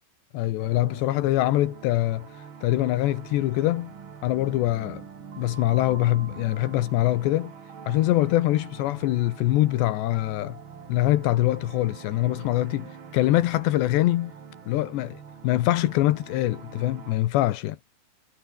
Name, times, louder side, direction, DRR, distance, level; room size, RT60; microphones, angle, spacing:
voice 1, 0.3-2.3 2.6-3.9 4.2-5.0 5.4-7.5 7.9-10.6 10.9-14.3 14.7-17.8, left 15 dB, 80° left, 3.3 m, -24 dB
sound 1, 0.6-17.1, right 6 dB, 40° right, 2.2 m, -44 dB
omnidirectional pair, 5.0 m